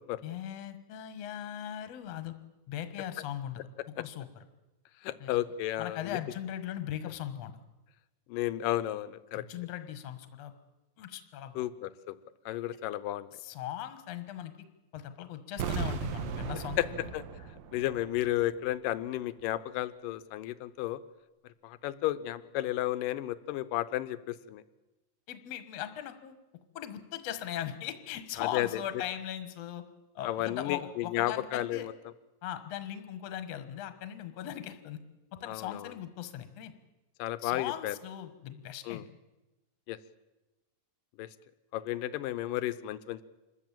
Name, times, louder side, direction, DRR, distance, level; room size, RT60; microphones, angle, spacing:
voice 1, 0.2-2.3 2.7-3.7 4.0-4.5 5.2-5.4 5.8-7.5 9.3-10.5 11.0-11.6 13.3-14.5 14.9-17.1 25.3-26.4 26.7-29.8 30.2-31.9 32.4-35.0 35.3-36.7 37.4-39.1, left 11 dB, 55° left, 10 dB, 2.2 m, -39 dB
voice 2, 5.0-6.2 8.3-9.4 11.6-12.2 12.5-13.3 16.8-16.9 17.1-17.2 17.7-21.0 21.6-24.6 28.4-28.7 30.2-31.9 35.5-35.9 37.2-38.0 38.9-39.0 39.9-40.0 41.2-41.3 41.7-43.2, left 14 dB, 75° left, 14 dB, 2.4 m, -33 dB
sound 1, 15.6-18.5 18.7-18.8, right 7 dB, 80° right, 3.2 m, -37 dB
26.0 x 14.0 x 8.9 m, 1.0 s
omnidirectional pair, 4.1 m